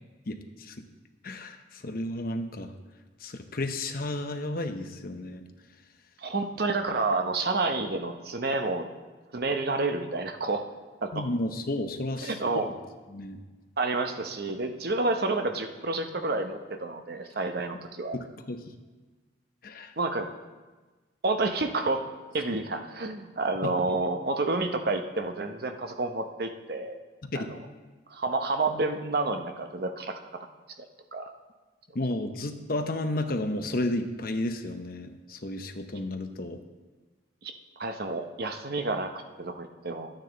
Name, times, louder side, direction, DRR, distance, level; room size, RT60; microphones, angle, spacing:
voice 1, 0.3-0.8 1.2-2.7 3.2-5.4 11.1-12.6 13.1-13.4 18.1-18.6 19.6-19.9 23.6-23.8 27.2-27.5 31.9-36.6, left 1 dB, 50° left, 6 dB, 0.8 m, -32 dB
voice 2, 6.2-8.9 9.3-10.6 11.0-11.1 12.2-12.7 13.8-18.2 20.0-20.3 21.2-22.1 22.3-27.0 27.3-27.6 28.1-30.2 31.1-31.3 37.4-39.1 39.4-40.1, right 3 dB, 55° right, 6 dB, 0.8 m, -29 dB
12.0 x 9.0 x 4.0 m, 1.3 s
head